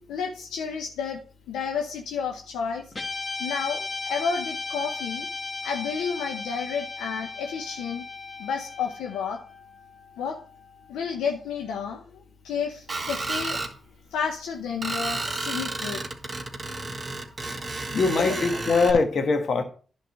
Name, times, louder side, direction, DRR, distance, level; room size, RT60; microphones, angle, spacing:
voice 1, 0.1-1.2 1.5-2.9 3.4-5.3 5.6-8.0 8.4-9.4 10.2-10.4 10.9-13.6 14.1-16.0 17.5-17.7 18.3-18.6, left 6 dB, 90° left, 0.8 m, -31 dB
Guitar, 2.9-11.4, left 3 dB, 35° left, 1.6 m, -36 dB
Screech, 12.9-13.7 14.8-18.9, right 2 dB, 40° right, 2.0 m, -32 dB
voice 2, 17.9-19.6, left 4 dB, 65° left, 1.4 m, -22 dB
10.5 x 3.8 x 6.2 m
supercardioid pair, 50°, 0 cm